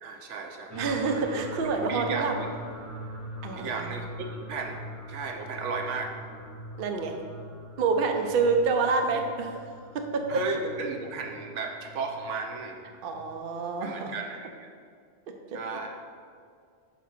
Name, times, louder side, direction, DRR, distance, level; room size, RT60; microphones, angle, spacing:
voice 1, 0.0-0.7 1.1-1.3 1.9-2.2 3.6-4.8 5.1-6.1 10.3-12.8 13.8-14.7 15.5-16.0, right 4 dB, 85° right, 3 dB, 1.0 m, -34 dB
sound 1, 0.7-13.4, right 1 dB, 15° right, 1.2 m, -42 dB
voice 2, 0.8-2.4 3.4-3.9 6.8-7.2 7.8-9.5 9.9-10.4 13.0-14.1, right 4 dB, 55° right, 4 dB, 0.7 m, -27 dB
5.9 x 3.6 x 5.8 m, 2.2 s
omnidirectional pair, 1.2 m